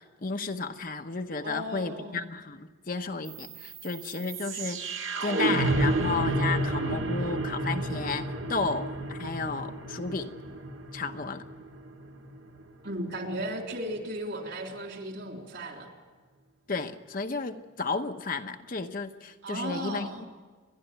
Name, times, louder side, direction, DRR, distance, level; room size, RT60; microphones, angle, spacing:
voice 1, 0.0-10.3 10.9-11.5 16.7-20.2, left 4 dB, 45° left, 6 dB, 0.9 m, -33 dB
voice 2, 1.4-2.2 12.8-15.9 19.4-20.2, right 1 dB, 55° right, 2 dB, 3.7 m, -35 dB
sound 1, 3.3-13.3, right 1 dB, 75° right, 1.9 m, -31 dB
29.5 x 11.5 x 9.2 m, 1.4 s
head